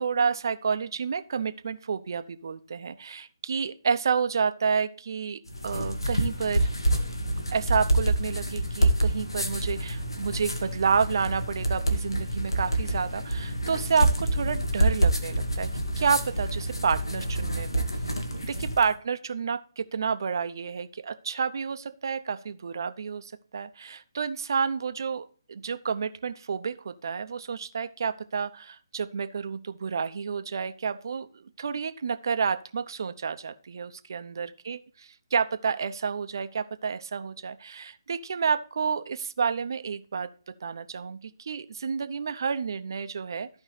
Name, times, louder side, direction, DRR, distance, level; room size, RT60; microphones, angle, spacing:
voice 1, 0.0-6.7 7.5-15.7 16.0-17.8 18.4-40.3 40.6-43.5, right 6 dB, 55° right, 12 dB, 0.7 m, -30 dB
sound 1, 5.5-18.9, right 1 dB, 85° left, 1.7 m, -27 dB
14.5 x 5.2 x 3.3 m, 0.42 s
figure-of-eight pair, 145°, 2 cm